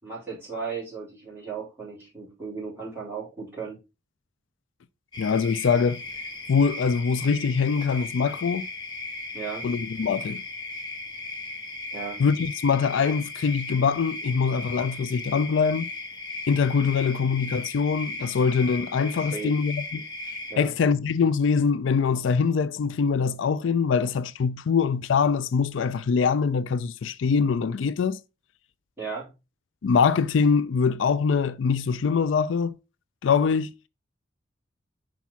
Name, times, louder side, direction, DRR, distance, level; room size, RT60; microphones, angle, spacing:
voice 1, 0.0-3.8 9.3-9.7 11.9-12.3 19.3-19.6 20.5-20.7 29.0-29.3, right 5 dB, 10° right, 4.0 m, -35 dB
sound 1, 5.1-20.6, left 3 dB, 20° left, 1.1 m, -37 dB
voice 2, 5.2-6.0 6.5-8.6 9.6-10.4 12.2-15.9 16.5-20.1 20.6-28.2 29.8-32.8 33.2-33.7, left 5 dB, 80° left, 0.4 m, -23 dB
5.9 x 4.6 x 4.1 m
head